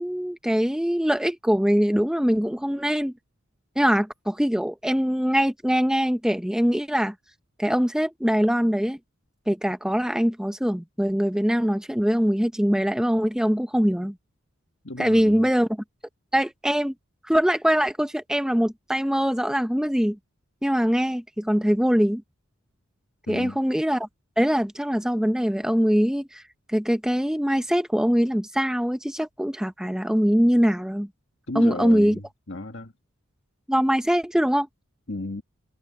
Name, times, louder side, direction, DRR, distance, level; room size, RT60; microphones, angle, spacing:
voice 1, 0.0-3.1 3.8-7.1 7.6-9.0 9.5-14.1 15.0-15.7 16.3-16.9 17.3-20.2 20.6-22.2 23.3-24.1 24.4-26.4 26.7-31.1 31.5-32.2 33.7-34.7, equal, 5° right, 0.6 m, -22 dB
voice 2, 14.8-15.5 23.3-23.6 31.5-32.9 35.1-35.4, left 2 dB, 60° left, 1.7 m, -34 dB
head